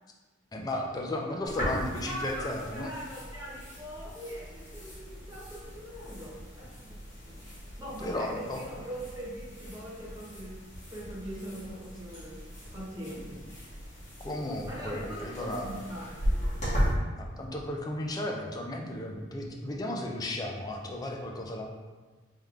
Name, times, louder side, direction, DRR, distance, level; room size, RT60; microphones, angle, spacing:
voice 1, 0.5-2.9 8.0-8.6 14.2-15.8 17.2-21.7, left 1 dB, 20° left, 1 dB, 0.4 m, -34 dB
sound 1, 1.5-16.9, equal, 35° left, 1.4 m, -37 dB
voice 2, 2.0-7.4 7.8-10.6 10.9-12.4 12.7-13.8 14.7-16.2, equal, 20° right, -6 dB, 1.0 m, -41 dB
3.5 x 3.3 x 3.4 m, 1.3 s
head